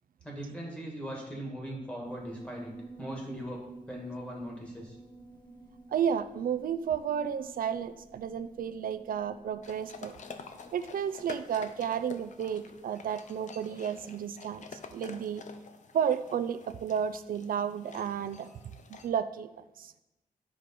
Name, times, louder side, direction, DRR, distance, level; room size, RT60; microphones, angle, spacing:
voice 1, 0.2-2.7 3.0-5.0, equal, 5° left, -2 dB, 2.2 m, -39 dB
Piano, 2.0-12.7, right 3 dB, 30° left, 1.6 m, -51 dB
voice 2, 5.9-10.2 10.7-14.6 14.9-15.4 15.9-18.5 18.9-19.9, right 8 dB, 90° right, 11 dB, 0.5 m, -32 dB
sound 1, 9.6-19.1, left 5 dB, 60° left, 0.7 m, -48 dB
10.5 x 5.0 x 5.9 m, 0.97 s
wide cardioid pair, 175°, 14 cm